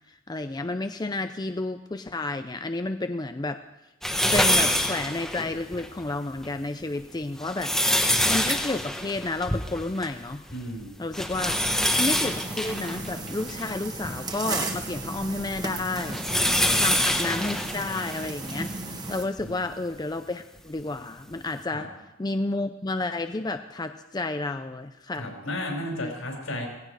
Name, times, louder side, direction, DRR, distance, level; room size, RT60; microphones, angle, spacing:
voice 1, 0.1-3.6 4.3-7.7 8.3-10.4 11.0-11.6 12.0-16.2 16.7-21.9 22.2-25.3 25.9-26.1, left 2 dB, 20° left, 8 dB, 0.5 m, -31 dB
sound 1, 4.0-5.9 6.4-6.5 7.2-10.2 10.5-10.6 11.1-14.1 14.8-18.7 19.4-19.5 20.8-20.9, equal, ahead, 1.1 m, -26 dB
voice 2, 10.5-10.9 11.4-11.5 16.6-16.7 19.4-19.6 21.7-21.8 25.1-26.7, left 1 dB, 75° left, 1 dB, 5.4 m, -34 dB
sound 2, 11.9-19.2, right 2 dB, 20° right, 1.5 m, -35 dB
17.5 x 16.5 x 4.8 m, 1.1 s
head